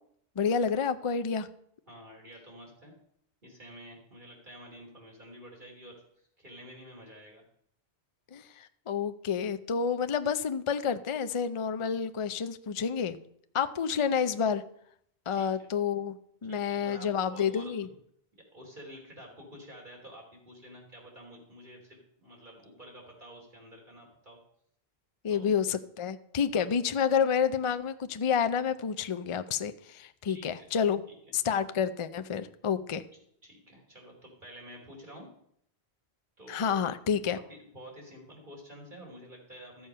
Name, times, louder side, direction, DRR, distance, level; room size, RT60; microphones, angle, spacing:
voice 1, 0.4-1.5 8.3-13.2 13.5-14.6 15.3-17.9 25.2-31.0 31.3-33.0 36.5-37.4, left 7 dB, 40° left, 10 dB, 0.5 m, -29 dB
voice 2, 1.9-2.9 3.4-7.4 15.3-15.7 16.5-17.9 18.5-24.4 25.3-25.4 26.5-26.7 30.3-30.7 31.1-31.2 33.4-35.3 36.4-36.7 37.2-39.9, equal, 50° right, -1 dB, 3.3 m, -49 dB
13.5 x 7.0 x 5.5 m, 0.69 s
omnidirectional pair, 1.1 m